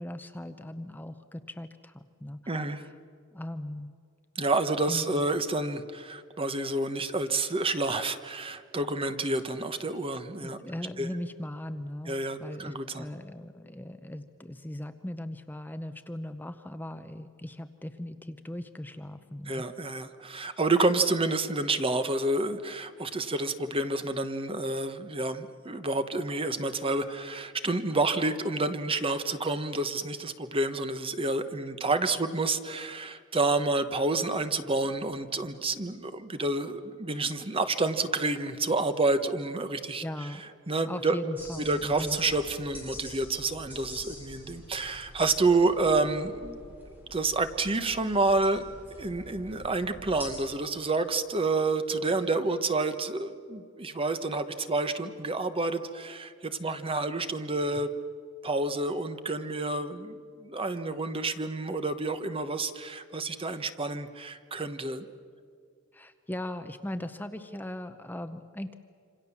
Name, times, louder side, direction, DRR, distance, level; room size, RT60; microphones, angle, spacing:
voice 1, 0.0-2.9 3.3-3.9 4.9-5.2 10.4-19.9 40.0-40.4 40.8-42.2 65.9-68.7, left 1 dB, 10° left, 9 dB, 0.7 m, -39 dB
voice 2, 2.5-2.8 4.4-10.6 11.0-11.1 12.1-13.0 19.5-40.0 40.7-41.1 41.7-46.6 47.1-48.6 49.0-57.9 58.4-65.1, right 2 dB, 25° right, 9 dB, 1.1 m, -29 dB
sound 1, 41.3-50.4, equal, 10° right, 6.7 m, -47 dB
27.0 x 26.5 x 7.2 m, 2.2 s
head